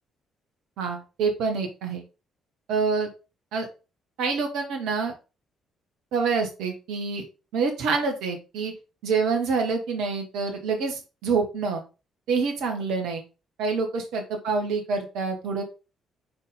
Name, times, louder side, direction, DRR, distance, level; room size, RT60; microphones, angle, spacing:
voice 1, 0.8-2.0 2.7-3.1 3.5-3.7 4.2-5.1 6.1-7.2 7.5-8.7 9.0-11.8 12.3-13.2 13.6-15.6, right 4 dB, 60° right, 3 dB, 1.5 m, -26 dB
6.1 x 4.3 x 3.7 m, 0.30 s
figure-of-eight pair, 45°, 0 cm